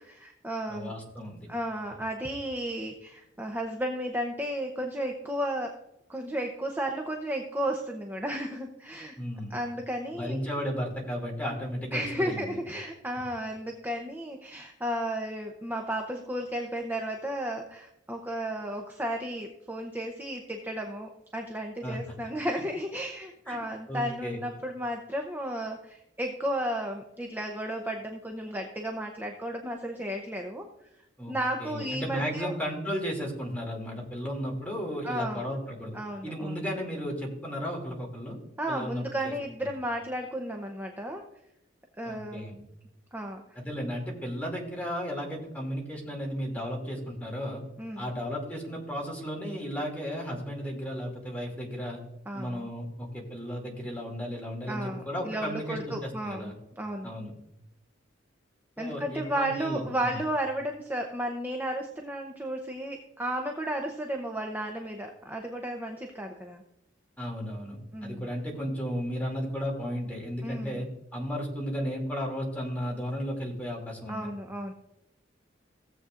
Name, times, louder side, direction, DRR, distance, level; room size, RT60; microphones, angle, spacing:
voice 1, 0.0-0.9 1.5-5.8 6.1-9.2 9.5-10.4 11.9-30.7 31.3-32.5 35.0-35.5 35.9-36.6 38.6-41.2 42.0-42.5 43.1-43.4 47.8-48.1 52.3-52.7 54.7-57.1 58.8-66.6 67.9-68.3 70.4-70.8 74.1-74.7, right 1 dB, 10° right, 2 dB, 0.7 m, -33 dB
voice 2, 0.7-1.5 9.2-9.5 10.1-12.6 21.8-22.0 23.5-23.6 23.9-24.4 31.2-36.0 36.2-38.4 38.7-39.3 42.0-42.6 43.5-47.6 48.0-52.0 52.3-56.5 57.0-57.3 58.8-60.2 67.2-70.9 71.1-74.3, equal, 10° left, -2 dB, 2.5 m, -34 dB
16.5 x 7.8 x 2.5 m, 0.86 s
head